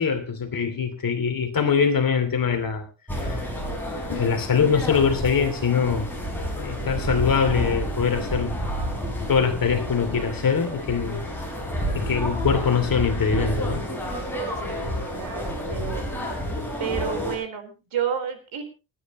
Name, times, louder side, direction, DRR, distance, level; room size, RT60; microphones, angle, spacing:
voice 1, 0.0-2.9 3.2-3.4 4.1-6.1 6.6-8.6 9.3-11.2 11.9-13.8, left 6 dB, 45° left, 6 dB, 2.8 m, -23 dB
sound 1, 3.1-17.4, equal, 5° left, 5.2 m, -30 dB
voice 2, 14.6-16.1 16.8-18.6, right 8 dB, 85° right, 6 dB, 4.2 m, -31 dB
29.0 x 10.0 x 3.0 m, 0.32 s
wide cardioid pair, 175°, 47 cm